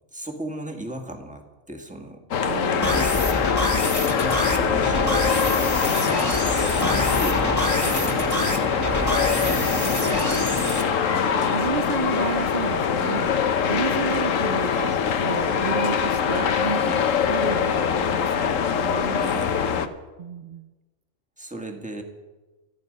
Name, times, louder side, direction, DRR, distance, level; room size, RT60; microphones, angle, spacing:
voice 1, 0.1-2.2 3.0-3.4 4.1-8.2 9.4-10.0 11.9-12.0 13.6-13.9 16.8-17.1 19.1-19.6 21.4-22.0, right 1 dB, 5° right, 1 dB, 2.0 m, -36 dB
sound 1, 2.3-19.9, left 7 dB, 85° left, 1.3 m, -23 dB
voice 2, 2.4-3.1 9.5-9.7 10.6-11.1 11.5-16.8 17.3-19.2 19.6-19.9 20.2-20.7, right 6 dB, 55° right, 13 dB, 0.6 m, -32 dB
sound 2, 2.8-10.8, left 1 dB, 15° left, 1.9 m, -27 dB
sound 3, 4.2-11.6, right 1 dB, 80° right, 7.3 m, -32 dB
27.0 x 9.4 x 5.4 m, 1.2 s
omnidirectional pair, 1.3 m